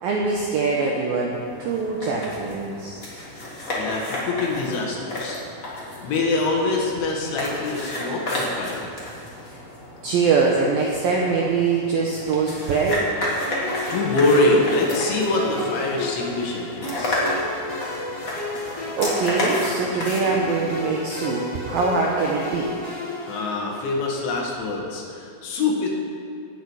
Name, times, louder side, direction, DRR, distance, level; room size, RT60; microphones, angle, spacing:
voice 1, 0.0-3.0 10.0-13.1 19.0-22.7, right 4 dB, 80° right, -1 dB, 2.1 m, -23 dB
sound 1, 1.3-21.2, left 1 dB, 30° left, 1.6 m, -32 dB
voice 2, 3.8-5.4 5.7-8.9 13.9-17.3 23.2-25.9, left 2 dB, 75° left, -1 dB, 4.1 m, -24 dB
sound 2, 13.4-24.1, left 2 dB, 10° left, 1.8 m, -33 dB
17.5 x 8.9 x 4.8 m, 2.5 s
omnidirectional pair, 5.5 m